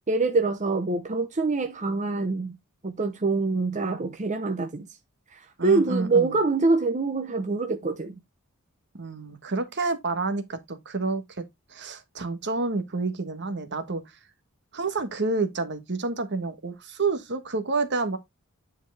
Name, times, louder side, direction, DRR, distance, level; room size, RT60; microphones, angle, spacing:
voice 1, 0.1-2.6 2.8-5.0 5.3-8.2, right 3 dB, 35° right, 0.8 m, -25 dB
voice 2, 5.6-6.4 9.0-11.4 11.7-14.2 14.7-18.2, right 3 dB, 50° right, 1.3 m, -29 dB
10.0 x 4.5 x 3.4 m
head